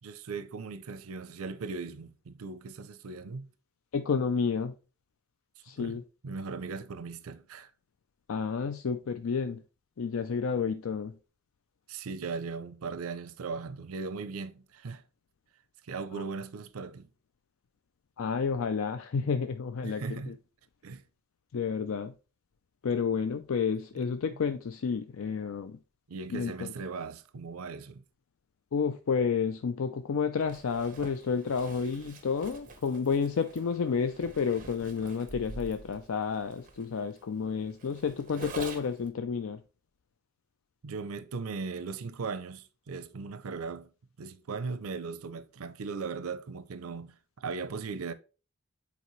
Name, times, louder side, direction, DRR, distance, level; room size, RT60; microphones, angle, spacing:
voice 1, 0.0-3.5 5.8-7.7 11.9-15.0 15.8-17.1 19.8-20.4 20.8-21.0 23.9-24.1 26.1-28.0 38.3-38.5 40.8-43.9 44.2-48.1, right 4 dB, 85° right, 0.5 m, -38 dB
voice 2, 3.9-4.7 5.6-6.0 8.3-9.6 10.0-11.1 16.1-16.2 18.2-20.3 21.5-22.1 22.8-25.8 26.3-26.7 28.7-39.6, left 5 dB, 70° left, 0.4 m, -30 dB
Zipper (clothing), 30.4-39.1, right 2 dB, 40° right, 1.1 m, -46 dB
8.2 x 4.2 x 3.1 m
head